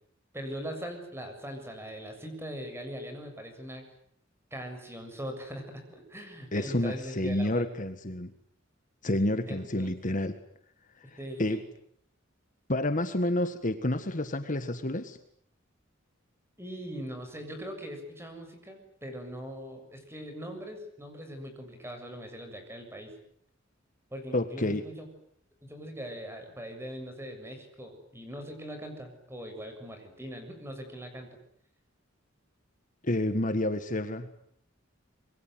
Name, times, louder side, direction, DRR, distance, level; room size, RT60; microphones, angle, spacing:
voice 1, 0.3-3.9 4.5-7.7 9.4-9.9 11.2-11.7 16.6-23.1 24.1-25.1 25.6-31.4, equal, 15° right, 6 dB, 7.2 m, -41 dB
voice 2, 6.5-8.3 9.0-10.4 11.4-11.6 12.7-15.2 24.3-24.8 33.0-34.3, left 1 dB, 40° left, 9 dB, 1.7 m, -29 dB
26.5 x 23.0 x 9.3 m, 0.69 s
head